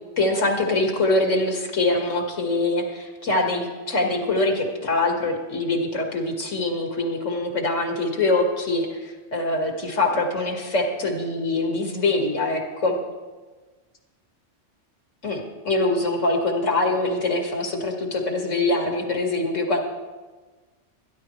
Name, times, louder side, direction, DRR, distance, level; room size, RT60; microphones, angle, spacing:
voice 1, 0.2-13.0 15.2-19.8, left 2 dB, 85° left, 2 dB, 2.2 m, -24 dB
22.5 x 11.0 x 3.2 m, 1.3 s
omnidirectional pair, 1.3 m